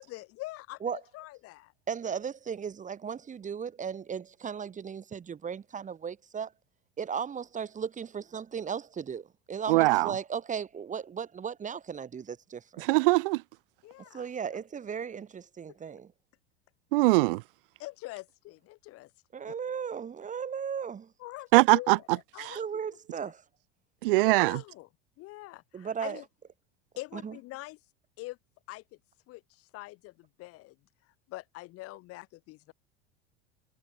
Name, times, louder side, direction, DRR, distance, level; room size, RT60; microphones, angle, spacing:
voice 1, 0.0-1.7 13.8-14.3 17.8-19.1 19.4-19.5 21.2-22.6 22.9-23.0 24.2-24.9 25.2-26.2 27.0-27.8 28.2-28.4 28.7-28.8 29.3-30.8 31.3-32.7, left 19 dB, 50° left, 2.4 m, -44 dB
voice 2, 1.9-6.5 7.0-12.8 14.1-16.1 19.3-21.1 22.6-23.4 25.7-26.2 27.1-27.4, right 7 dB, 25° right, 1.8 m, -36 dB
voice 3, 9.7-10.1 12.8-13.4 16.9-17.4 21.5-22.0 22.4-22.6 24.0-24.6, right 22 dB, 65° right, 0.6 m, -22 dB
hypercardioid pair, 80°, 30 cm